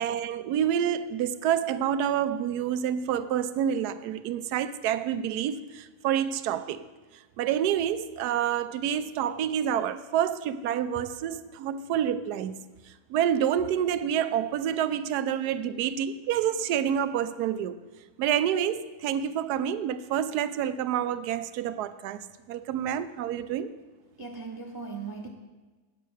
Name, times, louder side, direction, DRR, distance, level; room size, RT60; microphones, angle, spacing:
voice 1, 0.0-6.8 7.4-12.6 13.1-17.8 18.2-23.7, right 9 dB, 85° right, 1.1 m, -28 dB
voice 2, 24.2-25.3, right 4 dB, 20° right, 0.6 m, -38 dB
9.2 x 7.4 x 6.3 m
omnidirectional pair, 1.7 m